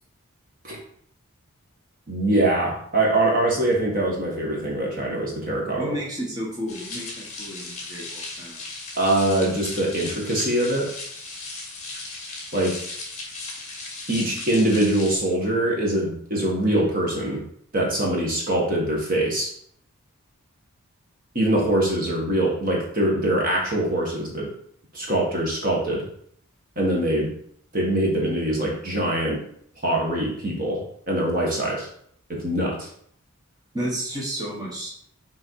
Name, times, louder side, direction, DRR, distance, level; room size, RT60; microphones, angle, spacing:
voice 1, 2.1-5.9 9.0-10.9 12.5-12.8 14.1-17.4 17.7-19.5 21.3-24.5 24.9-26.1 26.7-27.3 27.7-29.4 29.8-31.9 32.3-32.9, right 1 dB, 40° right, -2 dB, 1.8 m, -23 dB
voice 2, 5.8-8.6 33.7-34.9, equal, 20° right, -5 dB, 1.6 m, -32 dB
sound 1, 6.7-15.2, left 3 dB, 30° left, 1.9 m, -36 dB
6.5 x 4.2 x 4.8 m, 0.65 s
head